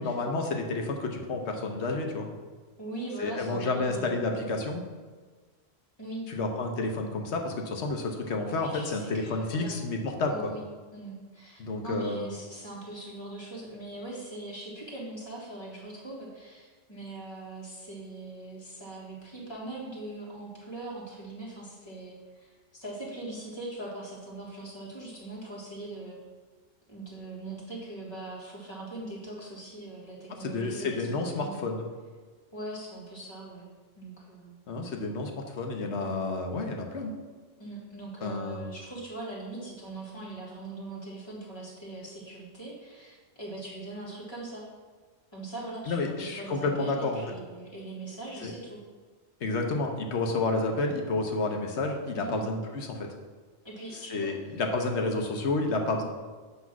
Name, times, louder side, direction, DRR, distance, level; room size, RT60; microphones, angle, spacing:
voice 1, 0.0-2.3 3.2-4.8 6.3-10.3 11.6-12.3 30.4-31.9 34.7-37.2 38.2-38.7 45.9-47.2 48.4-48.5 49.4-53.1 54.1-56.0, left 3 dB, 65° left, 3 dB, 1.2 m, -30 dB
voice 2, 2.8-4.2 6.0-6.3 8.5-9.8 10.3-10.6 10.9-26.2 26.9-31.7 32.5-33.7 34.0-34.6 36.0-36.2 37.6-44.7 45.3-48.8 52.2-52.4 53.6-54.5 56.0-56.1, right 2 dB, 20° left, -5 dB, 1.7 m, -41 dB
8.1 x 3.1 x 6.0 m, 1.4 s
omnidirectional pair, 1.2 m